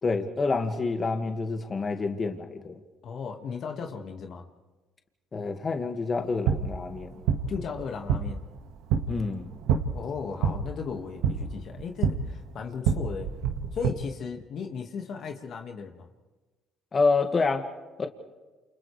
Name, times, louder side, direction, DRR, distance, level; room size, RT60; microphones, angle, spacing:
voice 1, 0.0-2.8 5.3-7.2 9.1-9.5 16.9-17.7 18.0-18.1, left 4 dB, 35° left, 5 dB, 2.0 m, -27 dB
voice 2, 3.0-4.5 7.5-8.4 9.9-13.3 13.7-16.1, left 5 dB, 60° left, 4 dB, 1.9 m, -36 dB
sound 1, 6.1-13.9, right 7 dB, 85° right, 1.8 m, -29 dB
29.0 x 29.0 x 3.4 m, 1.2 s
supercardioid pair, 80°, 0 cm